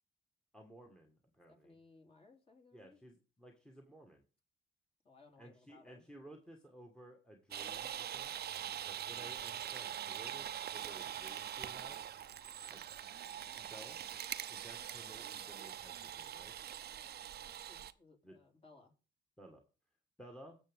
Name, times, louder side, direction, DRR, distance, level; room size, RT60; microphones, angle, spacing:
voice 1, 0.5-1.8 2.7-4.2 5.4-8.3 8.9-12.1 12.7-12.9 13.6-14.0 14.5-16.5 18.2-18.4 19.4-19.6 20.2-20.6, right 1 dB, 5° left, 3 dB, 1.6 m, -56 dB
voice 2, 1.5-3.0 5.0-6.1 17.7-18.9, left 3 dB, 30° left, 3 dB, 3.1 m, -63 dB
sound 1, 7.5-17.9, right 10 dB, 55° right, 0.6 m, -43 dB
17.5 x 7.0 x 3.6 m, 0.34 s
cardioid pair, 90°, 20 cm